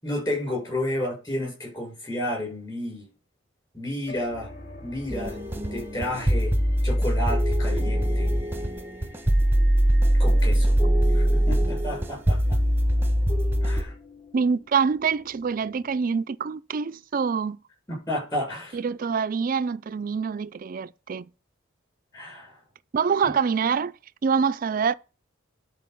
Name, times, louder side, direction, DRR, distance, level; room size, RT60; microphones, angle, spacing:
voice 1, 0.0-3.1 3.7-4.5 4.8-5.4 5.7-6.5 6.8-8.3 10.2-10.8 11.1-12.6 13.6-13.9 17.9-18.8 22.1-22.6 23.2-23.3, left 1 dB, 20° left, 6.7 m, -31 dB
sound 1, 4.0-16.0, left 2 dB, 50° left, 3.3 m, -46 dB
sound 2, 5.1-13.8, equal, 10° right, 0.9 m, -22 dB
voice 2, 14.3-17.6 18.7-21.3 22.9-23.9 24.2-24.9, right 6 dB, 45° right, 0.4 m, -25 dB
10.5 x 4.6 x 7.0 m
head